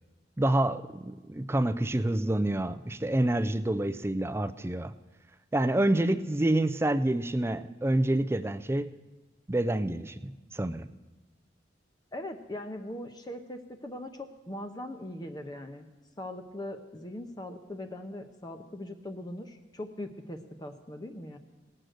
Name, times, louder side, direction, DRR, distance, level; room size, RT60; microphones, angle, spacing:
voice 1, 0.4-4.9 5.5-8.9 9.5-10.9, right 1 dB, 15° right, 13 dB, 0.4 m, -28 dB
voice 2, 5.8-6.2 12.1-15.9 16.2-21.4, left 1 dB, 20° left, 6 dB, 0.7 m, -40 dB
18.0 x 6.6 x 7.7 m, 1.2 s
head